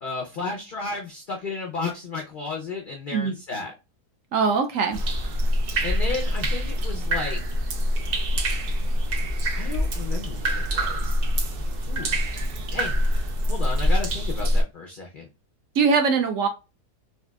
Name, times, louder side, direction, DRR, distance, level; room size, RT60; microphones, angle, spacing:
voice 1, 0.0-3.7 5.8-7.4 9.5-11.2 11.9-12.2 12.7-13.0 13.5-15.3, left 4 dB, 75° left, 1 dB, 0.4 m, -33 dB
voice 2, 4.3-5.0 15.8-16.5, right 5 dB, 65° right, 5 dB, 0.9 m, -21 dB
sound 1, 4.9-14.6, equal, 85° right, 0.5 m, -25 dB
4.2 x 2.5 x 2.2 m, 0.27 s
omnidirectional pair, 1.6 m